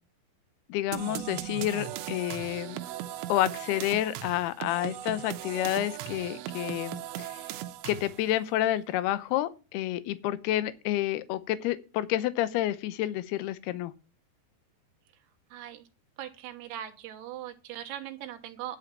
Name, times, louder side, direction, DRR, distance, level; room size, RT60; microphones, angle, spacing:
voice 1, 0.7-2.8 3.3-7.4 7.9-13.9, left 14 dB, 75° left, 2.6 m, -29 dB
sound 1, 0.9-8.3, right 13 dB, 90° right, 3.2 m, -38 dB
voice 2, 15.5-15.8 16.2-18.8, right 11 dB, 75° right, 3.2 m, -40 dB
11.0 x 5.6 x 7.3 m
omnidirectional pair, 5.1 m